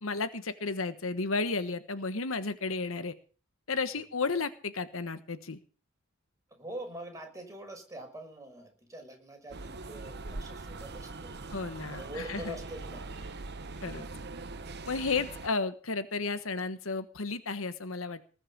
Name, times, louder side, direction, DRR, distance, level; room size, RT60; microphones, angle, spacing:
voice 1, 0.0-3.1 3.7-5.6 11.5-12.5 13.8-14.0 14.9-18.2, left 4 dB, 75° left, 11 dB, 1.3 m, -33 dB
voice 2, 6.5-11.4 11.9-13.3, right 1 dB, 15° right, 2 dB, 6.1 m, -44 dB
sound 1, 9.5-15.5, right 3 dB, 55° right, 1.1 m, -42 dB
20.0 x 6.6 x 8.7 m, 0.39 s
head